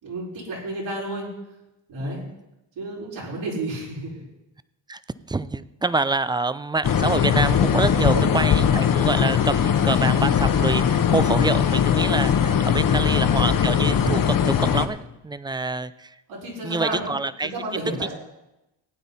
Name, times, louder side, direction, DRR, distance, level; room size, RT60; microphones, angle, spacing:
voice 1, 0.0-1.3 1.9-2.2 2.8-4.2 7.9-8.3 12.9-13.3 16.3-17.1 17.4-18.1, right 2 dB, 80° right, -5 dB, 5.3 m, -31 dB
voice 2, 2.0-2.4 4.9-5.0 5.3-16.1 16.6-17.5, right 3 dB, 10° right, 15 dB, 0.3 m, -26 dB
sound 1, 6.8-14.9, left 8 dB, 45° left, 1.0 m, -20 dB
16.5 x 9.3 x 4.1 m, 0.93 s
cardioid pair, 100°, 45 cm